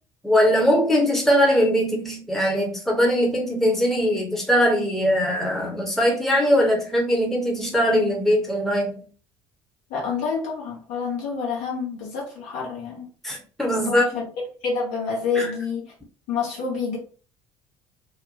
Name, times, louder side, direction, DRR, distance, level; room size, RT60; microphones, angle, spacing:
voice 1, 0.2-9.0 13.2-14.0 15.4-15.5, equal, ahead, 0.8 m, -21 dB
voice 2, 9.9-13.1 13.7-14.3 14.6-15.9 16.3-17.0, left 5 dB, 60° left, 1.0 m, -28 dB
2.7 x 2.1 x 2.7 m
figure-of-eight pair, 55°, 14 cm